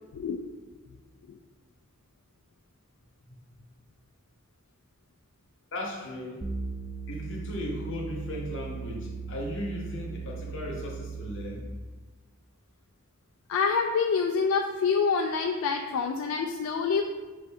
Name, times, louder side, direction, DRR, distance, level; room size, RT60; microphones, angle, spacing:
voice 1, 5.7-6.4 7.1-11.6, left 1 dB, 60° left, -1 dB, 0.9 m, -36 dB
sound 1, 6.4-11.7, right 4 dB, 20° right, 0.3 m, -38 dB
voice 2, 13.5-17.0, left 5 dB, 80° left, 3 dB, 0.3 m, -26 dB
5.3 x 2.6 x 3.4 m, 1.3 s
head